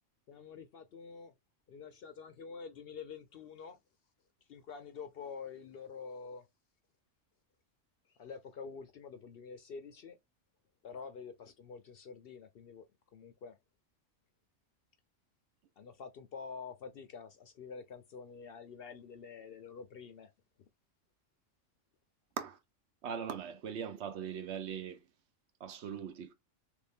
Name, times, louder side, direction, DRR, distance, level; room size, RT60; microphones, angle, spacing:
voice 1, 0.3-1.3 1.7-3.8 4.5-6.5 8.2-10.2 10.8-12.9 13.1-13.6 15.8-20.3, left 5 dB, 60° left, 0.7 m, -47 dB
voice 2, 23.0-25.0 25.6-26.3, right 7 dB, 65° right, 0.8 m, -40 dB
3.3 x 2.6 x 3.4 m
omnidirectional pair, 1.3 m